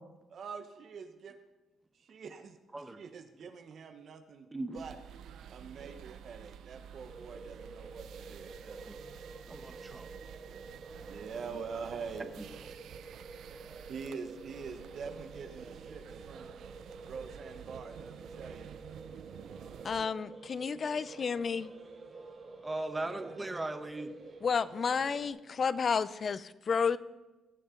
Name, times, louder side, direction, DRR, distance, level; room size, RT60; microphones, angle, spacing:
voice 1, 0.3-1.4 1.9-2.6 3.0-4.5 4.7-5.0 5.5-8.9 11.1-12.3 12.7-12.8 13.9-16.5 17.0-18.7 23.1-23.3, right 5 dB, 60° right, 7 dB, 1.0 m, -45 dB
sound 1, 4.7-20.1, right 9 dB, 75° right, 0.4 m, -50 dB
sound 2, 7.1-25.3, right 3 dB, 40° right, 3.2 m, -49 dB
voice 2, 9.5-10.1 12.4-12.5 22.6-24.1, right 2 dB, 15° right, 8 dB, 1.0 m, -38 dB
voice 3, 19.8-21.7 24.4-27.0, left 6 dB, 45° left, 17 dB, 0.5 m, -31 dB
19.5 x 7.2 x 3.8 m, 1.1 s
cardioid pair, 90°, 0 cm